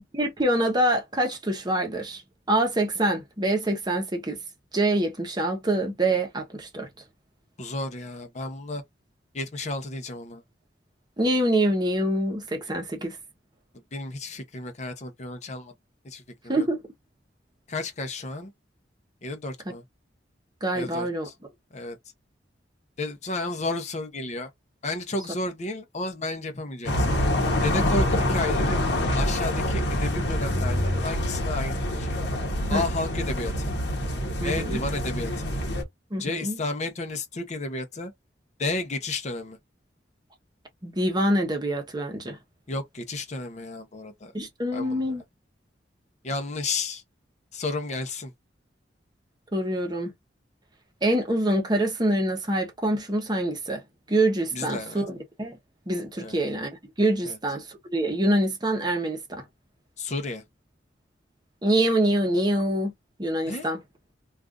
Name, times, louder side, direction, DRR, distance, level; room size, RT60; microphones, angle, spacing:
voice 1, 0.1-2.2 2.5-4.4 4.7-6.9 11.2-13.2 16.5-16.8 19.7-19.8 20.6-21.3 32.7-32.8 34.4-34.8 36.1-36.6 40.8-42.4 44.3-45.2 49.5-50.1 51.0-53.8 54.1-55.6 55.9-56.7 57.0-59.4 61.6-62.9 63.2-63.8, right 1 dB, 25° right, 0.9 m, -25 dB
voice 2, 7.6-8.8 9.3-10.4 13.9-15.7 16.0-16.7 17.7-18.5 19.2-19.8 20.7-21.3 21.7-22.0 23.0-24.5 24.8-27.1 27.6-28.8 29.1-32.1 32.7-33.7 34.4-35.5 36.2-38.1 38.6-39.6 42.7-44.3 44.7-45.0 46.2-47.0 47.5-48.3 54.5-55.0 56.2-56.4 57.2-57.4 60.0-60.4 63.5-63.7, left 2 dB, 40° left, 0.7 m, -32 dB
sound 1, 26.8-35.8, left 1 dB, 65° left, 0.9 m, -26 dB
2.4 x 2.4 x 3.5 m
head